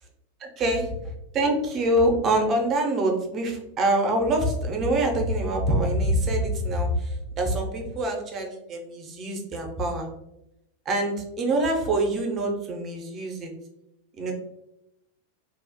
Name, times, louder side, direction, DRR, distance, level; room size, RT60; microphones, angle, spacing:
voice 1, 0.4-0.9 1.3-10.1 10.9-13.5 14.2-14.3, right 1 dB, 30° right, 3 dB, 0.5 m, -25 dB
2.5 x 2.0 x 2.7 m, 0.85 s
figure-of-eight pair, 90°, 0 cm